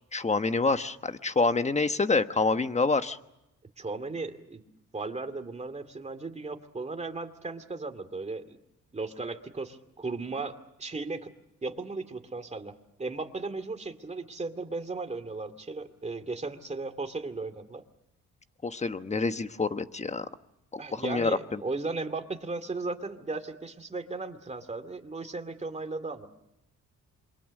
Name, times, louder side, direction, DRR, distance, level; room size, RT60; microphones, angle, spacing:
voice 1, 0.1-3.2 18.6-20.2 20.7-21.6, left 3 dB, 20° left, 10 dB, 1.3 m, -27 dB
voice 2, 3.8-4.6 4.9-8.6 8.9-11.3 11.6-17.8 20.8-26.3, right 3 dB, 20° right, 7 dB, 2.5 m, -36 dB
27.5 x 23.5 x 6.6 m, 0.89 s
cardioid pair, 90°, 30 cm